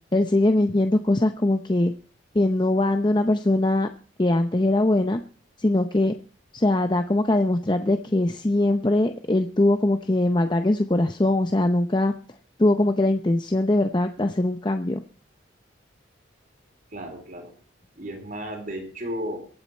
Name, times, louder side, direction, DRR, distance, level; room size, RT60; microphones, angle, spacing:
voice 1, 0.1-1.9 2.3-3.9 4.2-5.2 5.6-6.2 6.5-12.1 12.6-15.0, left 1 dB, 25° left, 7 dB, 0.6 m, -21 dB
voice 2, 16.9-17.5 18.0-19.5, equal, 45° right, 4 dB, 3.8 m, -34 dB
23.5 x 8.7 x 4.3 m, 0.40 s
head